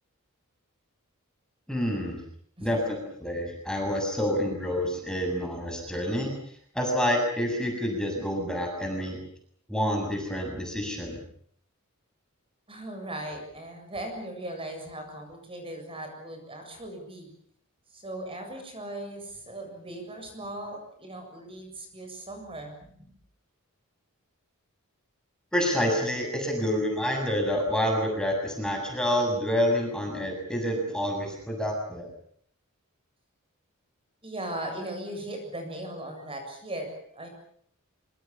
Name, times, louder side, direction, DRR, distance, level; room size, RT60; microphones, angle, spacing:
voice 1, 1.7-2.2 2.6-6.3 6.7-9.2 9.7-11.2 25.5-32.1, equal, 5° left, 2 dB, 7.2 m, -28 dB
voice 2, 12.7-17.3 17.9-23.1 34.2-37.3, right 1 dB, 25° right, 4 dB, 7.5 m, -38 dB
26.5 x 25.5 x 7.3 m, 0.63 s
head